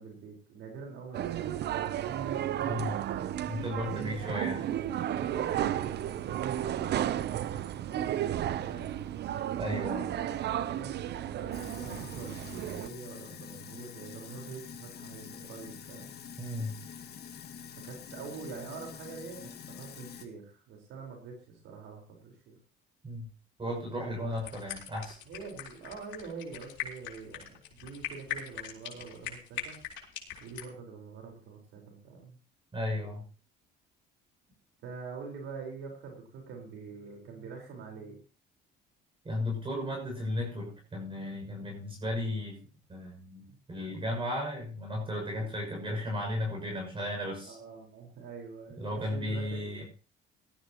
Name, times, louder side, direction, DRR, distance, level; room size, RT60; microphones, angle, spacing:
voice 1, 0.0-2.2 3.8-9.1 10.1-16.1 17.8-19.5 19.8-22.6 23.6-24.8 25.2-29.8 30.4-32.4 34.8-38.2 43.5-43.6 47.4-49.8, right 5 dB, 75° right, 2 dB, 4.6 m, -45 dB
sound 1, 1.1-12.9, right 11 dB, 60° right, 0.8 m, -33 dB
voice 2, 2.6-3.0 3.5-4.7 9.6-10.1 16.4-16.8 23.0-23.3 23.6-25.2 32.7-33.2 39.2-42.6 42.9-47.6 48.8-49.8, left 1 dB, 25° right, 0 dB, 6.5 m, -35 dB
Sink (filling or washing), 11.5-20.3, left 7 dB, 55° left, 2.0 m, -46 dB
sound 2, 24.3-30.7, left 10 dB, 70° left, 4.2 m, -41 dB
18.5 x 13.0 x 3.0 m, 0.35 s
cardioid pair, 95°, 20 cm